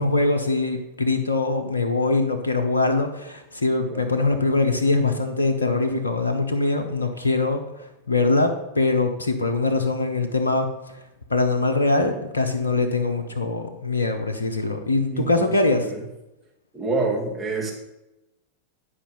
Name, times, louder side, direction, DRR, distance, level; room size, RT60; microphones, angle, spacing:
voice 1, 0.0-10.7 11.3-15.9, left 3 dB, 75° left, 5 dB, 0.8 m, -23 dB
voice 2, 15.1-16.0 16.7-17.7, right 3 dB, 15° right, -2 dB, 2.3 m, -28 dB
10.0 x 5.1 x 5.6 m, 0.95 s
figure-of-eight pair, 90°, 0 cm